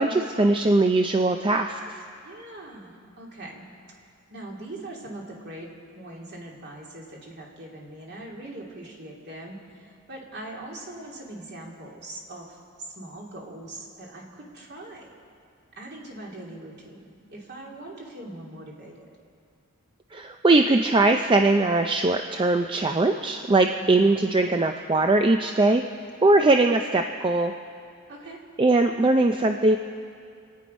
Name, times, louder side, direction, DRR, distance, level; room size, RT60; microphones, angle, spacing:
voice 1, 0.0-1.8 20.1-25.8 26.2-27.5 28.6-29.8, right 2 dB, 20° right, 5 dB, 0.4 m, -20 dB
voice 2, 2.2-3.6 4.3-5.7 5.9-15.1 15.8-18.9 23.8-24.2 28.1-28.4, right 1 dB, 50° right, -2 dB, 2.7 m, -41 dB
28.0 x 9.5 x 5.3 m, 2.3 s
head